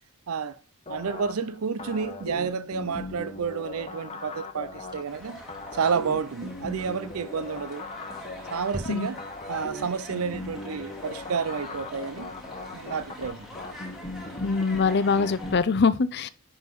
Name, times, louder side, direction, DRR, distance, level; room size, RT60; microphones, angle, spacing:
voice 1, 0.3-0.6 0.9-5.4 5.7-7.9 8.5-9.2 9.5-12.3 12.7-13.5, right 6 dB, 75° right, 0.5 m, -30 dB
sound 1, 0.9-15.6, left 2 dB, 30° left, 1.0 m, -39 dB
sound 2, 4.8-5.3 7.4-7.9 8.2-8.3 8.7-9.4, right 1 dB, 20° right, 1.5 m, -42 dB
sound 3, 5.1-15.6, left 1 dB, ahead, 2.2 m, -44 dB
voice 2, 14.4-16.3, left 4 dB, 50° left, 0.5 m, -23 dB
11.0 x 4.0 x 5.7 m
head